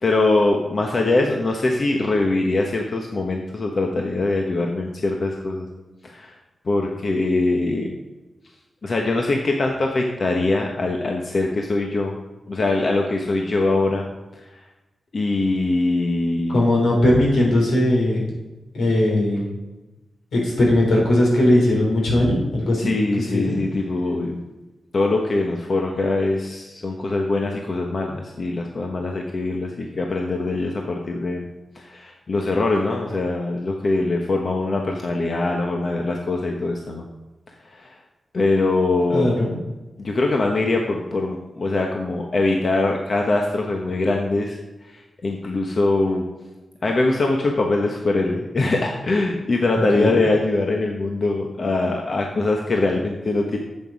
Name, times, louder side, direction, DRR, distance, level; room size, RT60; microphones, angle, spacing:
voice 1, 0.0-5.7 6.0-6.3 6.6-7.9 8.8-12.2 12.5-14.0 15.1-16.6 22.8-24.4 24.9-31.5 31.7-37.0 37.8-37.9 38.3-39.3 40.0-44.6 44.9-46.3 46.8-53.6, left 2 dB, 55° left, 1 dB, 1.2 m, -22 dB
voice 2, 16.5-18.2 18.7-19.4 20.3-22.9 23.2-23.5 39.1-39.5 49.8-50.1, left 1 dB, 90° left, -2 dB, 3.4 m, -19 dB
9.2 x 7.6 x 6.2 m, 1.1 s
cardioid pair, 65°, 0 cm